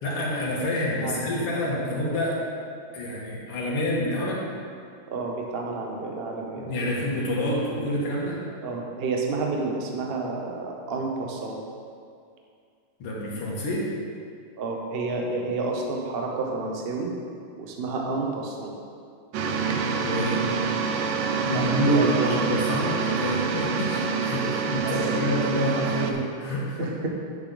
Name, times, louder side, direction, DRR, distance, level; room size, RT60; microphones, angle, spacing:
voice 1, 0.0-2.4 2.9-4.5 6.6-8.4 13.0-13.9 19.7-19.8 20.0-20.4 21.4-26.9, equal, 90° left, -5 dB, 2.5 m, -27 dB
voice 2, 5.1-6.9 8.6-11.6 14.6-17.1 17.6-18.7 21.3-22.5 24.8-24.9 26.8-27.1, right 3 dB, 50° right, 0 dB, 0.7 m, -30 dB
sound 1, 19.3-26.1, right 5 dB, 70° right, 1.1 m, -27 dB
9.4 x 6.9 x 3.9 m, 2.3 s
omnidirectional pair, 2.4 m